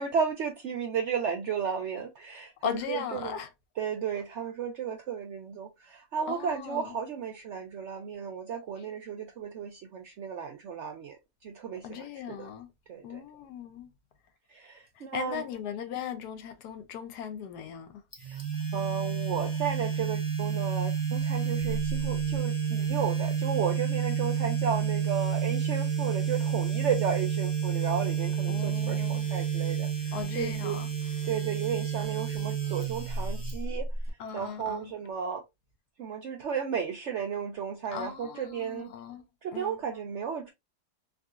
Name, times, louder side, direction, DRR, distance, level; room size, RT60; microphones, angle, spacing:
voice 1, 0.0-3.4 3.8-12.5 12.9-13.2 14.5-15.4 18.2-18.4 18.7-30.8 31.2-33.9 34.3-35.4 36.0-38.9 39.4-40.5, right 7 dB, 70° right, 0.6 m, -34 dB
voice 2, 2.6-3.5 6.3-7.0 11.8-12.7 13.0-13.9 15.0-18.0 28.5-29.3 30.1-30.9 34.2-34.9 37.9-39.2 39.5-39.8, left 8 dB, 75° left, 1.2 m, -38 dB
sound 1, 18.1-34.1, right 7 dB, 20° left, 0.7 m, -30 dB
3.7 x 2.3 x 2.3 m
omnidirectional pair, 1.7 m